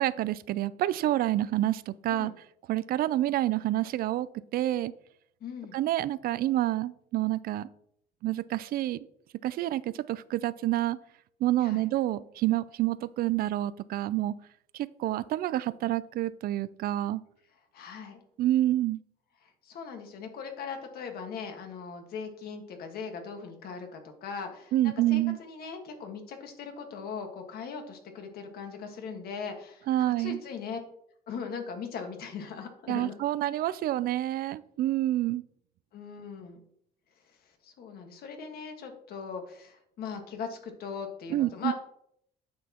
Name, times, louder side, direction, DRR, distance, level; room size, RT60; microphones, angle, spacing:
voice 1, 0.0-2.3 2.7-4.3 4.5-4.9 5.7-7.7 8.2-9.0 9.4-11.0 11.4-14.3 14.7-17.2 18.4-19.0 24.7-25.4 29.9-30.4 32.9-35.4 41.3-41.7, right 14 dB, 60° right, 18 dB, 0.4 m, -28 dB
voice 2, 5.4-5.8 11.6-11.8 17.7-18.2 19.6-24.7 25.1-29.8 30.2-30.8 31.3-33.2 35.9-36.6 37.6-41.7, left 6 dB, 65° left, 5 dB, 1.5 m, -39 dB
9.3 x 6.2 x 2.9 m, 0.70 s
cardioid pair, 110°, 17 cm